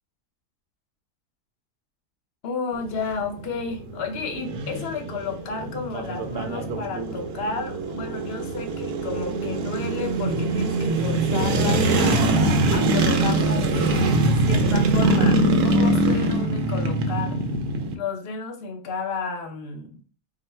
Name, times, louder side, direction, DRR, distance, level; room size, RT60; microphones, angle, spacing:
voice 1, 2.4-12.3 12.7-17.4 17.9-20.0, left 4 dB, 50° left, 5 dB, 0.8 m, -32 dB
sound 1, 2.7-17.9, right 2 dB, 80° right, 1.1 m, -23 dB
3.8 x 2.1 x 4.2 m, 0.38 s
omnidirectional pair, 1.7 m